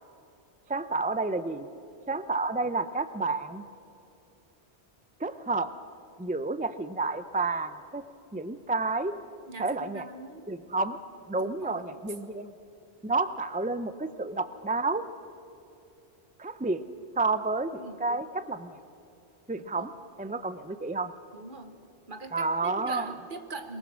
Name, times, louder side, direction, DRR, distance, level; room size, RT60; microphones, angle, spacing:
voice 1, 0.7-1.7 2.1-3.6 5.2-5.7 6.2-8.0 8.3-9.1 9.6-10.0 10.5-11.0 11.3-12.5 13.0-15.0 16.4-16.8 17.2-18.8 19.5-19.9 20.2-21.1 22.3-23.1, right 3 dB, 10° right, 12 dB, 0.4 m, -30 dB
voice 2, 9.5-10.5 11.4-11.8 17.8-18.2 19.7-19.9 21.3-21.8 22.1-23.8, right 3 dB, 50° right, 7 dB, 1.5 m, -42 dB
22.5 x 21.5 x 6.3 m, 2.8 s
omnidirectional pair, 1.1 m